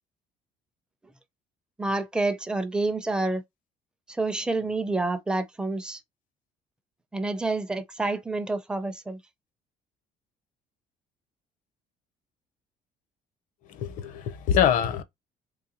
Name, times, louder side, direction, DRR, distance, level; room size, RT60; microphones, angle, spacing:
voice 1, 1.8-3.4 4.1-6.0 7.1-9.2, right 2 dB, 5° right, 0.4 m, -28 dB
voice 2, 13.8-15.0, left 9 dB, 60° left, 0.6 m, -24 dB
3.8 x 3.2 x 2.8 m
cardioid pair, 170°, 15 cm